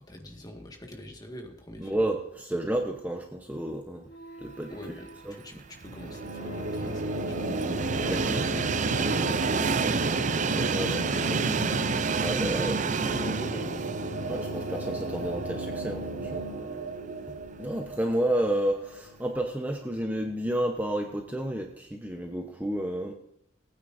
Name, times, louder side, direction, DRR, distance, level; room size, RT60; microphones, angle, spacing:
voice 1, 0.0-2.0 4.7-7.5 8.5-9.8 10.7-11.7 12.1-13.9, left 1 dB, 20° left, 2 dB, 1.7 m, -45 dB
voice 2, 1.8-4.0 4.4-4.7 5.2-5.3 8.1-8.7 10.5-11.4 12.2-12.8 14.3-16.4 17.6-23.1, right 1 dB, 10° right, 2 dB, 0.8 m, -31 dB
sound 1, 4.0-17.8, right 2 dB, 80° left, 4.1 m, -45 dB
Train, 5.7-15.8 16.3-16.4 17.5-17.6, right 5 dB, 40° right, 0.5 m, -30 dB
sound 2, 5.8-19.2, right 2 dB, 75° right, 1.7 m, -33 dB
19.0 x 9.3 x 2.6 m, 0.77 s
head